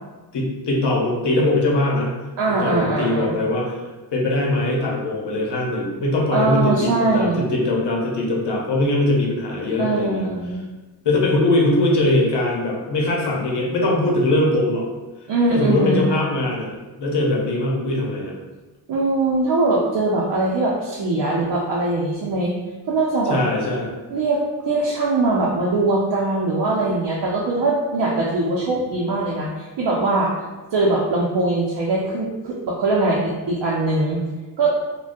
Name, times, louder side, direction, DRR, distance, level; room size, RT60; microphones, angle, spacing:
voice 1, 0.3-2.2 2.6-3.7 4.1-10.3 11.0-14.9 15.5-16.7 17.0-18.4 23.3-23.9 28.7-28.8, left 2 dB, 70° left, -2 dB, 0.8 m, -21 dB
voice 2, 2.4-3.4 6.3-7.4 9.8-10.7 15.3-16.1 18.9-22.6 22.9-23.4 24.1-30.4 30.7-34.2 34.6-34.8, right 2 dB, 85° right, -4 dB, 0.6 m, -21 dB
3.5 x 2.2 x 2.5 m, 1.2 s
wide cardioid pair, 155°, 42 cm